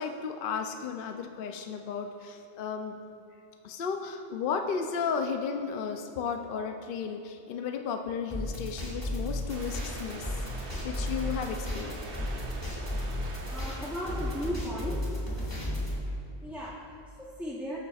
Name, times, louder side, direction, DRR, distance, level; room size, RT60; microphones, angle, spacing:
voice 1, 0.0-2.9 3.6-12.0, left 6 dB, 60° left, 5 dB, 0.7 m, -34 dB
sound 1, 8.3-16.0, left 1 dB, 20° left, 2.4 m, -34 dB
sound 2, 9.5-14.5, right 2 dB, 60° right, 1.1 m, -42 dB
voice 2, 13.5-15.3 16.4-17.8, equal, ahead, -7 dB, 0.7 m, -36 dB
18.0 x 6.7 x 2.4 m, 2.8 s
omnidirectional pair, 1.1 m